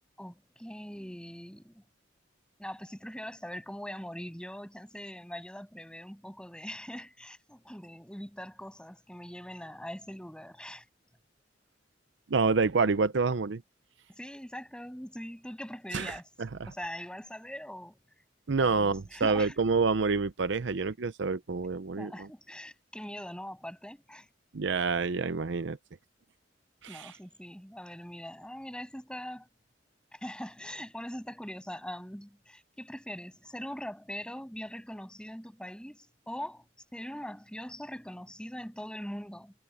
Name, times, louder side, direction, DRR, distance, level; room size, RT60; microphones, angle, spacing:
voice 1, 0.2-1.8 2.6-10.9 14.1-16.3 16.7-18.0 18.6-19.6 22.0-24.3 26.9-29.5 30.1-36.6 36.9-39.5, equal, 5° left, 7.9 m, -42 dB
voice 2, 12.3-13.6 15.9-16.1 16.6-16.7 18.5-22.3 24.5-25.8 26.8-27.1, right 4 dB, 70° right, 0.6 m, -27 dB
head